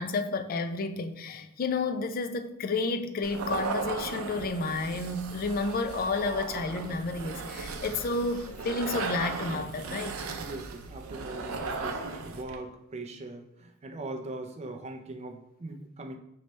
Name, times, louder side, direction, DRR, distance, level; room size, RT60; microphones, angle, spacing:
voice 1, 0.0-10.3, left 3 dB, 45° left, 0.4 m, -31 dB
sound 1, 3.2-12.6, right 4 dB, 90° right, 0.5 m, -36 dB
voice 2, 10.4-16.2, right 2 dB, 30° right, 0.5 m, -41 dB
5.4 x 3.2 x 3.1 m
head